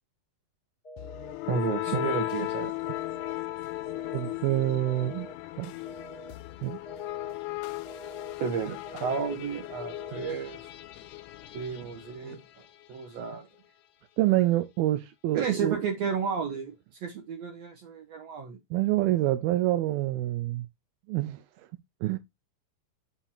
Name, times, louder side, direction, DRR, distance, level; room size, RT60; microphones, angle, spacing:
sound 1, 0.8-1.3 1.8-2.3 2.8-3.3 3.8-4.3 4.8-5.3 5.8-6.3 6.8-7.3 7.8-8.3 8.8-9.3 9.8-10.3, equal, 25° left, 1.7 m, -46 dB
sound 2, 1.0-12.9, left 17 dB, 85° left, 1.7 m, -37 dB
voice 1, 1.5-2.7 8.4-10.7 11.5-12.4 12.9-13.5 15.3-16.7 17.0-18.6, right 6 dB, 65° right, 1.8 m, -32 dB
voice 2, 4.1-5.3 5.6-5.7 6.6-6.8 12.3-12.4 14.2-15.8 18.7-20.7 21.1-21.4 22.0-22.2, right 15 dB, 85° right, 2.4 m, -26 dB
7.2 x 2.8 x 5.5 m
omnidirectional pair, 4.2 m